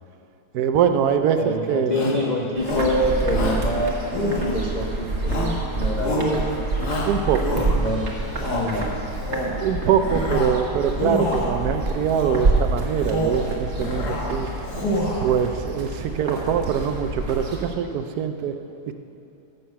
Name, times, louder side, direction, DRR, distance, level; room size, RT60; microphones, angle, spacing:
voice 1, 0.5-1.9 6.0-6.4 7.1-7.6 9.5-14.5 15.2-18.6, right 8 dB, 70° right, 8 dB, 1.1 m, -23 dB
voice 2, 1.4-6.4 6.7-6.9 7.5-8.1 8.5-9.0, left 1 dB, 35° left, -2 dB, 0.7 m, -26 dB
Shout, 1.9-2.2 2.6-3.0 3.3-3.7 4.1-4.8 5.3-5.6 6.0-6.4 6.8-7.9 8.3-8.7 9.1-9.6 10.0-10.6 10.9-11.6 12.1-12.5 12.9-13.4 13.8-14.3 14.6-15.3, left 1 dB, 75° left, 1.9 m, -27 dB
sound 1, 2.6-17.7, right 2 dB, 45° right, 1.5 m, -28 dB
sound 2, 7.8-17.2, right 2 dB, 50° left, 3.3 m, -40 dB
13.5 x 6.7 x 5.7 m, 2.9 s
omnidirectional pair, 1.8 m